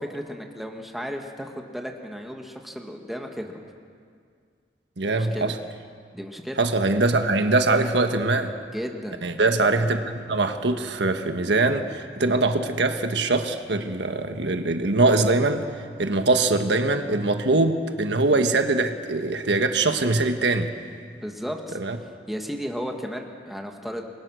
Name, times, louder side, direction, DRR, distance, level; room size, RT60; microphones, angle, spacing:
voice 1, 0.0-3.5 5.1-5.5 6.1-6.6 8.7-9.2 21.1-21.8 22.3-24.1, equal, ahead, 2 dB, 1.8 m, -34 dB
voice 2, 5.0-5.6 6.6-8.5 9.2-20.7 21.7-22.0, right 2 dB, 85° right, 6 dB, 1.5 m, -22 dB
28.5 x 22.5 x 6.5 m, 2.1 s
head